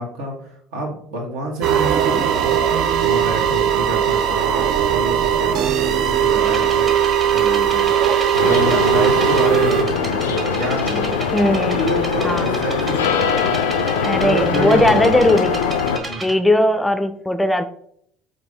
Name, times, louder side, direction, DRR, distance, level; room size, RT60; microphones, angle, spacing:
voice 1, 0.0-2.5 3.0-6.9 7.3-7.9 8.4-11.2 11.6-13.7 14.2-15.1 16.0-16.3, right 2 dB, 70° right, 0 dB, 1.2 m, -27 dB
sound 1, 1.6-9.8, right 9 dB, 55° right, 0.4 m, -18 dB
sound 2, 6.4-16.3, right 2 dB, 30° right, 1.4 m, -33 dB
sound 3, 8.3-16.0, left 6 dB, 80° left, 0.3 m, -22 dB
voice 2, 11.3-11.8 12.2-12.5 14.0-15.6 16.2-17.6, left 1 dB, 10° left, 9 dB, 0.4 m, -18 dB
4.5 x 2.6 x 3.9 m, 0.68 s
hypercardioid pair, 60°, 0 cm